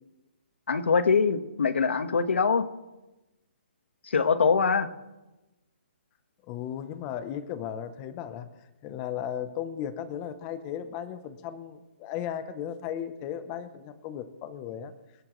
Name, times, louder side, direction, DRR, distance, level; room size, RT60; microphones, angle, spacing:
voice 1, 0.7-2.7 4.0-4.9, left 5 dB, 80° left, 11 dB, 1.3 m, -23 dB
voice 2, 6.5-8.5 8.8-14.9, left 9 dB, 15° left, 12 dB, 0.6 m, -36 dB
25.0 x 12.0 x 3.1 m, 1.1 s
hypercardioid pair, 180°, 6 cm